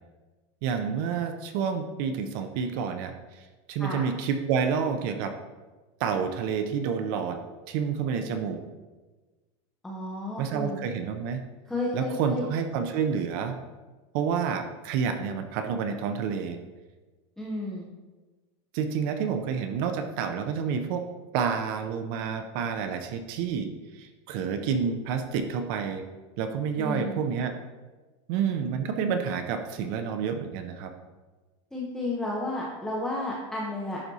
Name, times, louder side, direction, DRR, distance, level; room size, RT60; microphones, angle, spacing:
voice 1, 0.6-5.3 6.0-7.4 7.7-8.6 10.4-11.4 11.9-13.6 14.1-16.6 18.7-21.0 21.3-26.0 26.4-27.5 28.3-30.9, right 6 dB, 45° right, 7 dB, 0.5 m, -29 dB
voice 2, 9.8-10.8 11.7-12.5 17.4-17.8 26.8-27.2 31.7-34.0, left 2 dB, 5° left, -4 dB, 0.6 m, -32 dB
10.5 x 4.0 x 2.7 m, 1.2 s
supercardioid pair, 165°, 16 cm